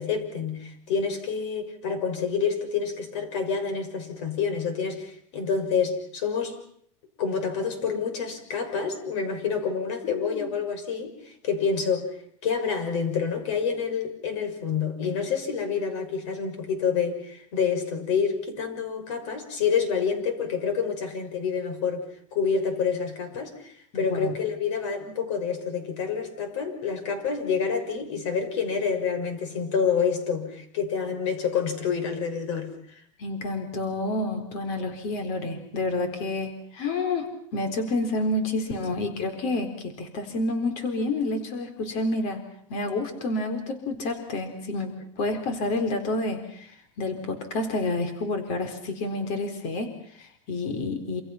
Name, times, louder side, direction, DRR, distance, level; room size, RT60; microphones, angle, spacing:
voice 1, 0.0-6.6 7.2-12.1 12.4-22.0 22.3-33.0, left 6 dB, 65° left, 8 dB, 6.3 m, -28 dB
voice 2, 10.1-10.5 23.9-24.4 33.2-42.4 42.7-51.2, left 2 dB, 45° left, 7 dB, 4.1 m, -29 dB
28.0 x 27.5 x 5.8 m, 0.65 s
supercardioid pair, 160°, 16 cm